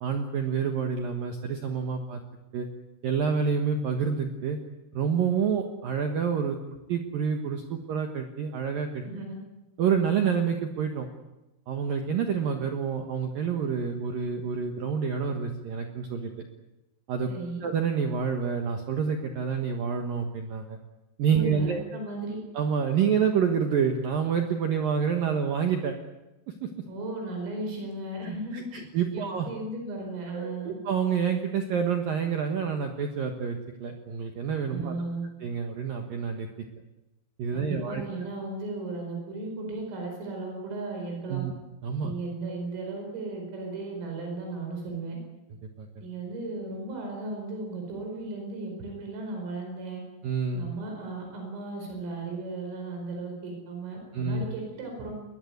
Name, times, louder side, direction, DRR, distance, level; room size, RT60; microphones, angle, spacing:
voice 1, 0.0-2.2 2.5-2.7 3.0-4.6 4.9-6.6 6.9-9.0 9.8-11.1 11.7-16.3 17.1-17.3 17.6-20.8 21.2-21.8 22.5-25.9 26.6-26.7 28.5-29.5 30.3-34.9 35.4-36.5 37.4-38.0 41.3-41.5 41.8-42.1 45.8-45.9 50.2-50.7 54.1-54.4, right 6 dB, 65° right, 5 dB, 2.4 m, -28 dB
voice 2, 9.0-9.4 17.3-17.6 21.3-22.4 26.9-28.8 29.1-30.8 34.7-35.2 37.5-41.5 42.0-45.2 46.0-50.0 50.5-55.1, right 2 dB, 80° right, 2 dB, 7.5 m, -36 dB
22.0 x 21.0 x 9.5 m, 0.99 s
omnidirectional pair, 5.8 m